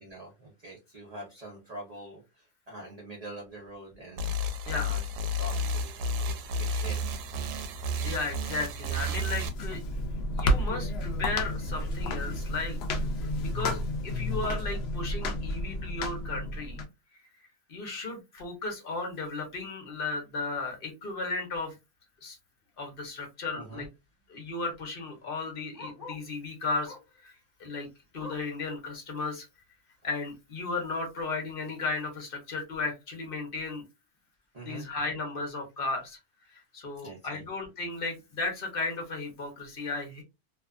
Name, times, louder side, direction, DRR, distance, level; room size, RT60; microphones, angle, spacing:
voice 1, 0.0-4.3 4.7-5.0 5.4-6.4 6.7-7.0 23.5-23.9 34.5-34.9 37.0-37.4, right 1 dB, 40° right, -3 dB, 0.6 m, -44 dB
sound 1, 4.2-9.5, left 1 dB, 85° right, 1.1 m, -31 dB
voice 2, 8.0-9.8 10.3-12.8 13.4-16.8 17.7-21.8 22.2-22.4 22.8-23.9 24.3-27.0 27.2-27.3 27.6-27.9 28.1-29.5 30.0-33.8 34.6-36.2 36.5-40.2, left 3 dB, 45° left, 3 dB, 0.9 m, -35 dB
sound 2, 9.4-16.8, left 1 dB, 90° left, 0.5 m, -31 dB
Bark, 22.6-22.9 23.2-23.3 23.5-26.3 26.8-27.2 27.6-28.6 29.1-29.2 29.6-29.7 30.3-30.4, left 3 dB, 25° left, 1.1 m, -48 dB
2.7 x 2.3 x 2.3 m, 0.24 s
omnidirectional pair, 1.6 m